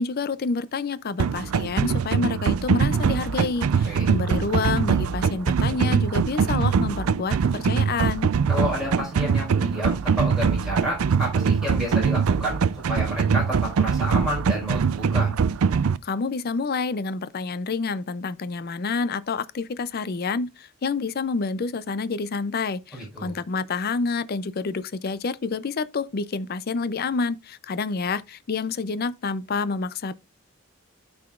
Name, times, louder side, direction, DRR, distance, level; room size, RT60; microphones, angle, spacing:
voice 1, 0.0-8.3 16.0-30.1, left 4 dB, 45° left, 0.4 m, -28 dB
sound 1, 1.2-16.0, right 6 dB, 85° right, 0.4 m, -22 dB
voice 2, 8.5-12.6 12.9-15.3 22.9-23.4, equal, ahead, 4.5 m, -30 dB
13.0 x 4.9 x 2.4 m
head